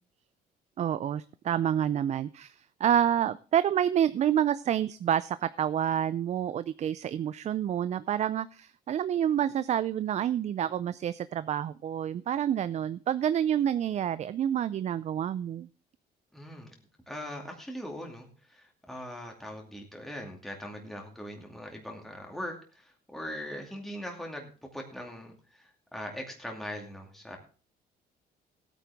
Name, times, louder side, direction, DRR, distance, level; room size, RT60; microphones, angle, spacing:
voice 1, 0.8-15.7, right 10 dB, 40° right, 15 dB, 0.4 m, -28 dB
voice 2, 16.3-16.7 17.1-27.4, equal, ahead, 1 dB, 2.4 m, -41 dB
16.0 x 9.1 x 3.5 m, 0.38 s
cardioid pair, 110°, 17 cm